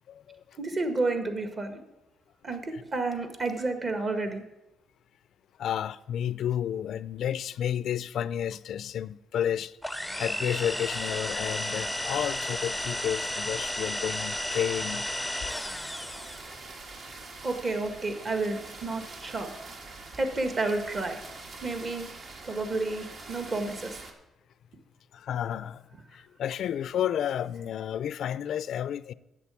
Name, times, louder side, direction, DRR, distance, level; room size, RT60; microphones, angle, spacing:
voice 1, 0.1-0.6 2.7-2.8 5.6-15.1 25.1-29.1, left 10 dB, 70° left, 0.4 m, -31 dB
voice 2, 0.6-1.8 2.4-4.4 17.4-19.5 20.2-21.2 21.6-22.1 22.4-24.0, right 2 dB, 40° right, 1.7 m, -30 dB
sound 1, 9.8-16.5, left 1 dB, ahead, 0.6 m, -33 dB
sound 2, 15.5-24.1, right 3 dB, 55° right, 1.7 m, -44 dB
8.5 x 7.0 x 8.3 m
cardioid pair, 90°, 0 cm